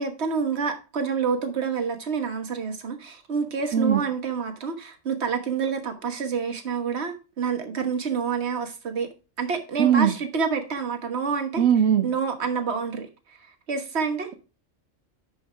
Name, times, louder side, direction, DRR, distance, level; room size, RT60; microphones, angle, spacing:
voice 1, 0.0-9.1 9.4-11.6 12.0-13.1 13.7-14.3, right 5 dB, 60° right, 1.6 m, -28 dB
voice 2, 3.7-4.0 9.8-10.1 11.6-12.1, right 8 dB, 90° right, 1.2 m, -19 dB
10.5 x 5.4 x 3.4 m
omnidirectional pair, 1.3 m